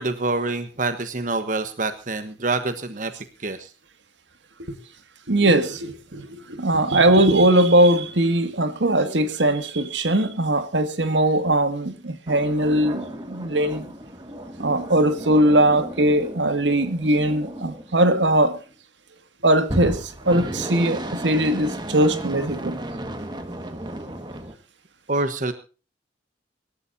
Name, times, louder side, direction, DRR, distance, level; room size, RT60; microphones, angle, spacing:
voice 1, 0.0-3.1 3.4-3.7 25.1-25.5, right 3 dB, 45° right, 1.2 m, -26 dB
voice 2, 5.3-13.9 14.6-18.6 19.4-22.8, right 1 dB, 80° right, 2.1 m, -20 dB
sound 1, 12.3-18.6 19.6-24.6, right 1 dB, 25° right, 1.7 m, -34 dB
25.5 x 13.0 x 2.7 m
head